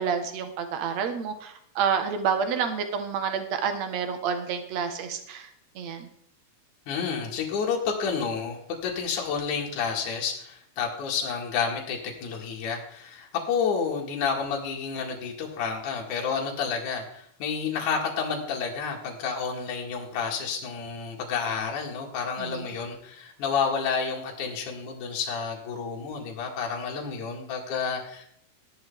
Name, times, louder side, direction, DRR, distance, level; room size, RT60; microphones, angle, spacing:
voice 1, 0.0-5.5 5.8-6.1 22.4-22.7, right 7 dB, 60° right, 7 dB, 2.2 m, -29 dB
voice 2, 6.9-28.2, left 6 dB, 60° left, -1 dB, 3.1 m, -30 dB
14.5 x 11.0 x 3.6 m, 0.68 s
omnidirectional pair, 4.4 m